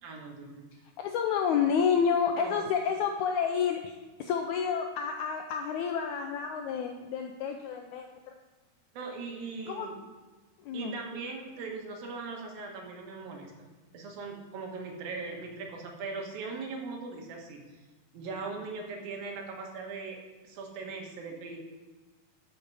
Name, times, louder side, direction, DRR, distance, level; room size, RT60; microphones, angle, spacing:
voice 1, 0.0-0.5 2.4-2.7 8.9-10.0 10.7-13.7 13.9-17.6 18.1-20.2 20.4-21.6, right 4 dB, 85° right, 1 dB, 3.3 m, -39 dB
voice 2, 1.0-3.9 4.2-8.1 9.7-9.9 10.6-10.9, left 7 dB, 80° left, 4 dB, 1.7 m, -29 dB
13.5 x 5.6 x 4.8 m, 1.3 s
omnidirectional pair, 4.0 m